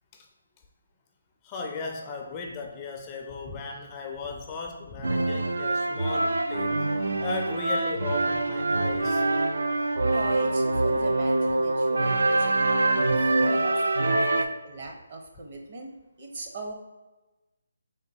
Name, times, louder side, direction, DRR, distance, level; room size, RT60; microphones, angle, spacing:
voice 1, 1.4-6.9 7.2-9.3, left 4 dB, 20° left, 2 dB, 0.4 m, -36 dB
sound 1, 5.0-14.4, right 2 dB, 80° right, 0.4 m, -25 dB
voice 2, 10.1-12.8 13.1-15.9 16.2-16.7, right 2 dB, 45° right, 1 dB, 0.9 m, -39 dB
4.4 x 3.7 x 2.7 m, 1.1 s
hypercardioid pair, 160°, 0 cm